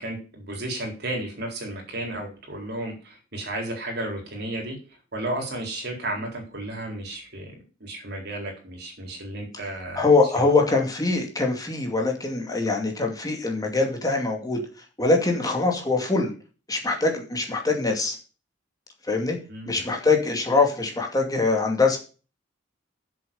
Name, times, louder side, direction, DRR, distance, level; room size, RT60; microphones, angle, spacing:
voice 1, 0.0-4.8 5.1-7.5 7.8-10.0 10.3-10.5 19.5-19.9, right 1 dB, 60° right, 1 dB, 4.0 m, -33 dB
voice 2, 9.9-14.6 15.0-16.3 16.7-18.2 19.1-19.4 19.7-22.0, left 3 dB, 20° left, 2 dB, 2.4 m, -23 dB
7.7 x 7.4 x 7.0 m, 0.35 s
head